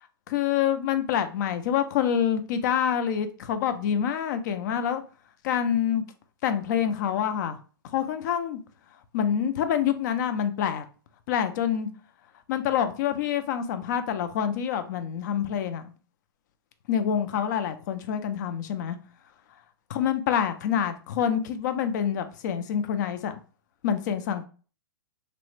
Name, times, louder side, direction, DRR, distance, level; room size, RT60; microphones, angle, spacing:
voice 1, 0.3-5.0 5.4-6.0 6.4-7.6 7.9-8.6 9.1-10.8 11.3-11.9 12.5-15.8 16.9-19.0 19.9-23.4 23.8-24.5, left 9 dB, 50° left, 0.5 m, -26 dB
3.3 x 2.0 x 3.1 m
hypercardioid pair, 140°, 12 cm